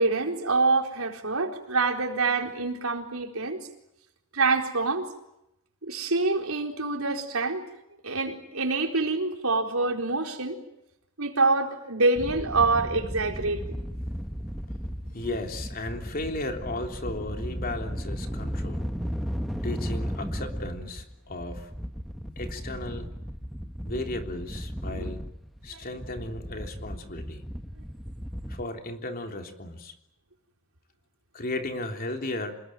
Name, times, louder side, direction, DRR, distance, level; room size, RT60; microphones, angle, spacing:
voice 1, 0.0-3.7 4.3-5.1 5.9-7.7 8.0-10.6 11.2-13.6 24.9-25.1, right 3 dB, 85° right, 3 dB, 4.3 m, -26 dB
sound 1, 12.2-28.6, equal, ahead, 1.5 m, -35 dB
voice 2, 15.1-19.3 19.6-21.7 22.4-23.1 23.8-25.2 25.6-27.4 28.5-29.9 31.3-32.6, left 2 dB, 45° left, 4 dB, 3.4 m, -35 dB
27.5 x 20.5 x 9.3 m, 0.83 s
head